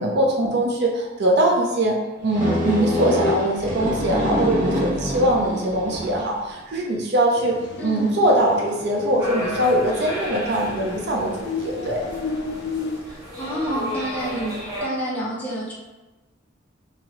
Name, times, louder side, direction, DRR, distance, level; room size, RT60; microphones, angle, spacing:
voice 1, 0.0-2.0 2.2-12.0, right 1 dB, 55° right, -1 dB, 0.5 m, -22 dB
sound 1, 2.3-6.3, left 1 dB, 40° right, 0.9 m, -25 dB
sound 2, 7.4-13.0, left 4 dB, 60° left, 0.3 m, -34 dB
voice 2, 7.8-8.1 13.0-14.6 14.8-15.7, right 1 dB, 10° left, -7 dB, 0.7 m, -29 dB
sound 3, 9.2-14.9, equal, 20° right, 1.3 m, -33 dB
2.9 x 2.6 x 2.9 m, 1.1 s
head